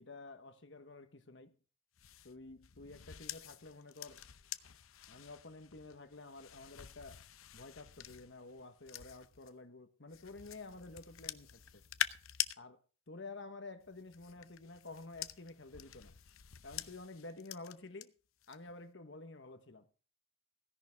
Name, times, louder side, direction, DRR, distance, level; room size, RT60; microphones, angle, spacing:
voice 1, 0.0-1.6 2.2-4.2 5.1-7.3 7.5-11.8 12.6-12.8 13.1-16.2 16.6-18.1 18.5-19.9, left 3 dB, 60° left, 1.3 m, -51 dB
sound 1, 2.0-9.5 10.1-12.6 13.8-18.0 18.4-18.8, left 11 dB, 85° left, 0.8 m, -45 dB
16.5 x 10.5 x 3.6 m
head